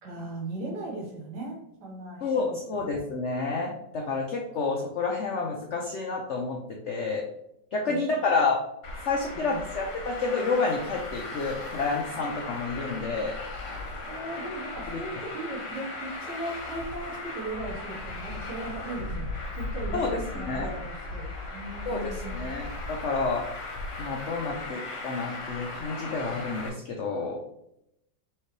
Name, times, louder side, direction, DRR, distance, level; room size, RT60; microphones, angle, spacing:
voice 1, 0.0-2.6 7.9-8.1 9.4-9.6 14.1-22.4, right 2 dB, 60° right, -3 dB, 1.8 m, -38 dB
voice 2, 2.2-6.6 6.8-7.2 7.7-8.6 9.0-13.3 19.9-20.1 20.5-20.7 21.9-23.5 24.0-27.4, left 4 dB, 90° left, 0 dB, 0.6 m, -29 dB
Traffic noise roadway noise, 8.8-26.7, left 2 dB, 50° left, 1.0 m, -37 dB
4.5 x 3.3 x 3.2 m, 0.77 s
omnidirectional pair, 2.0 m